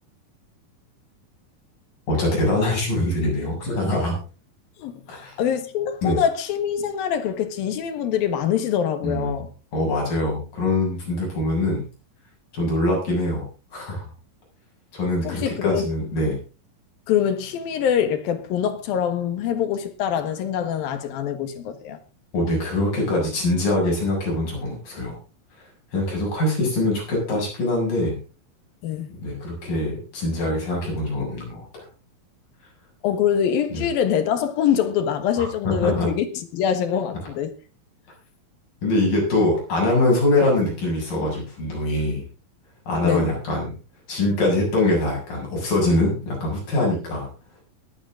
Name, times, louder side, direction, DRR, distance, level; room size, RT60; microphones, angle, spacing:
voice 1, 2.1-4.1 5.1-5.3 6.0-6.2 9.0-9.4 9.7-11.9 12.5-13.5 13.7-14.1 14.9-16.4 22.3-25.2 25.9-28.2 29.2-31.9 33.7-33.8 35.4-36.1 38.8-42.2 42.9-43.7 44.1-47.3, left 1 dB, 70° left, 9.1 m, -23 dB
voice 2, 4.8-9.5 15.2-15.9 17.1-22.0 28.8-29.1 33.0-37.5 43.0-43.3, left 8 dB, 85° left, 3.4 m, -24 dB
21.0 x 9.3 x 3.8 m
omnidirectional pair, 4.0 m